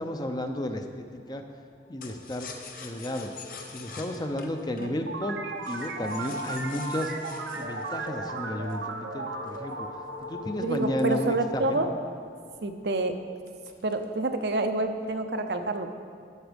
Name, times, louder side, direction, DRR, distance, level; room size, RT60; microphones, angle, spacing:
voice 1, 0.0-1.4 1.9-2.5 2.8-3.4 3.7-7.1 7.5-9.9 10.2-11.9, left 1 dB, 25° left, 5 dB, 0.6 m, -33 dB
sound 1, 1.8-13.2, left 5 dB, 80° left, 1.5 m, -46 dB
sound 2, 2.0-8.9 9.5-11.9 12.3-12.4 12.7-13.0 13.5-14.2 14.5-15.0, left 5 dB, 50° left, 1.0 m, -46 dB
sound 3, 5.1-11.3, right 3 dB, 90° right, 1.0 m, -36 dB
voice 2, 10.6-11.9 12.6-13.2 13.8-15.9, right 2 dB, 70° right, 6 dB, 0.7 m, -28 dB
13.0 x 7.2 x 5.2 m, 2.2 s
head